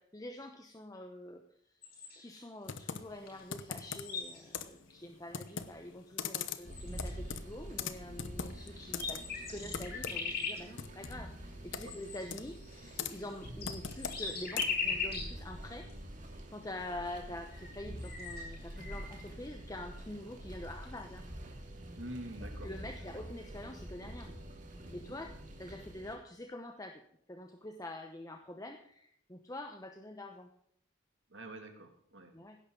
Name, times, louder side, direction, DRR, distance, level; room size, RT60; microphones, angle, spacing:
voice 1, 0.0-1.4 1.7-1.8 2.1-11.3 11.6-15.9 16.5-21.2 22.6-24.3 24.9-25.3 25.6-27.0 27.3-30.5 32.3-32.6, left 1 dB, 20° left, 5 dB, 0.9 m, -46 dB
sound 1, 1.8-2.4 3.3-3.4 3.7-4.7 5.5-5.6 6.3-6.4 6.7-7.3 8.4-8.5 8.8-10.6 11.8-15.3 15.9-16.0 17.1-17.2 17.5-19.2, left 4 dB, 50° left, 6.5 m, -39 dB
Computer keyboard, 2.6-14.9, left 7 dB, 75° left, 1.0 m, -43 dB
sound 2, 6.6-26.2, equal, 40° right, 2.7 m, -47 dB
voice 2, 22.0-22.7 23.1-23.2 25.2-25.3 31.3-32.3, right 1 dB, 70° right, 4 dB, 2.5 m, -46 dB
16.5 x 11.5 x 3.9 m, 0.68 s
head